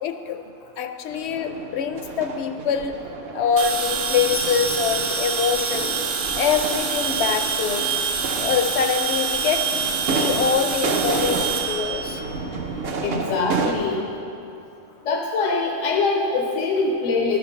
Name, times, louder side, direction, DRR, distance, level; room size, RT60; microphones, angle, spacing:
voice 1, 0.0-0.4 0.8-3.0 3.3-6.0 6.3-8.0 8.4-9.7 10.1-12.2, left 7 dB, 65° left, 7 dB, 0.8 m, -24 dB
sound 1, 1.1-13.7, right 3 dB, 60° right, 0.9 m, -31 dB
sound 2, 3.6-12.8, right 5 dB, 90° right, 1.2 m, -26 dB
voice 2, 13.0-14.1 15.1-17.4, left 3 dB, 85° left, 1 dB, 1.0 m, -23 dB
11.5 x 5.2 x 5.7 m, 2.8 s
omnidirectional pair, 1.3 m